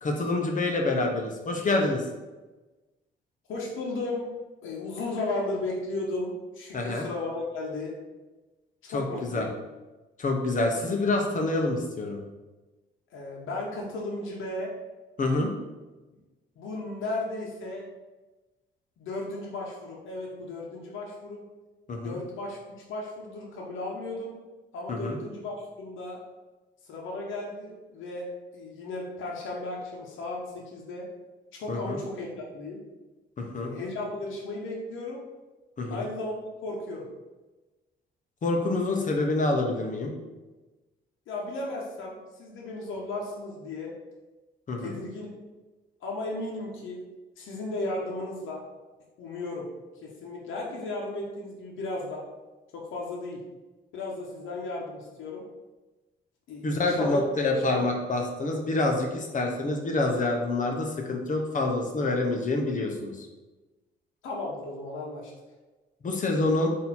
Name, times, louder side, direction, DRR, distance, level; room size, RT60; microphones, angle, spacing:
voice 1, 0.0-2.0 6.7-7.0 8.9-9.5 10.2-12.2 15.2-15.5 21.9-22.2 24.9-25.2 31.7-32.0 33.4-33.7 35.8-36.0 38.4-40.1 44.7-45.0 56.6-63.3 66.0-66.7, left 2 dB, 40° left, 2 dB, 0.9 m, -27 dB
voice 2, 3.5-4.3 4.6-7.9 8.8-9.5 13.1-14.7 16.6-17.8 19.0-21.4 22.0-22.6 22.9-24.3 24.7-26.2 26.8-28.3 28.5-31.1 31.5-32.3 32.5-32.8 33.6-35.2 35.9-36.3 36.6-37.1 41.3-43.9 44.8-45.3 46.0-47.0 47.4-48.6 49.2-49.7 50.0-52.2 52.7-53.4 53.9-55.4 56.5-57.2 57.7-57.9 64.2-65.3, left 2 dB, 80° left, -3 dB, 1.0 m, -35 dB
4.1 x 2.8 x 4.3 m, 1.2 s
cardioid pair, 90°, 20 cm